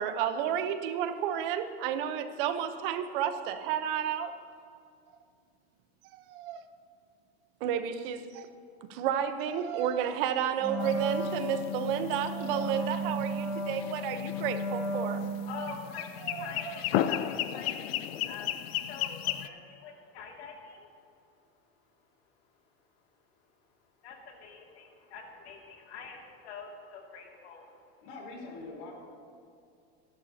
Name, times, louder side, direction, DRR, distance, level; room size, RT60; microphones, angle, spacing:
voice 1, 0.0-4.3 6.1-6.6 7.6-8.5 8.9-15.2 16.2-16.7, right 9 dB, 55° right, 10 dB, 1.0 m, -31 dB
Wind instrument woodwind instrument, 10.6-15.7, equal, 5° left, 1.7 m, -34 dB
sound 1, 10.8-19.5, left 12 dB, 70° left, 0.7 m, -35 dB
voice 2, 14.8-23.7 24.0-28.1, left 5 dB, 85° left, 0 dB, 2.5 m, -47 dB
voice 3, 28.0-28.9, left 3 dB, 55° left, -2 dB, 4.0 m, -43 dB
24.0 x 11.5 x 2.9 m, 2.4 s
supercardioid pair, 160°, 31 cm